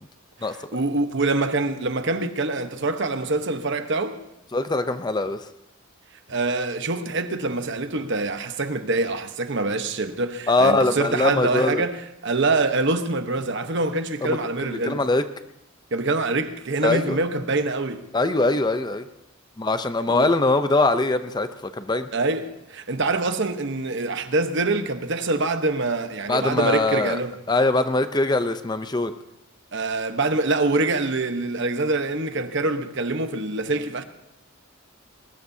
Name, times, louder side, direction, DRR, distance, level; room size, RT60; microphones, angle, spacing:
voice 1, 0.4-4.2 6.3-12.0 12.2-15.0 15.9-18.0 20.1-20.3 22.1-27.4 29.7-34.0, right 3 dB, 55° right, 1.1 m, -25 dB
voice 2, 4.5-5.4 10.5-11.9 14.2-14.4 14.6-15.2 16.8-17.2 18.1-19.0 19.6-21.5 21.7-22.1 26.3-27.2 27.5-29.1, left 2 dB, 20° left, 0.6 m, -22 dB
21.5 x 20.0 x 2.8 m
head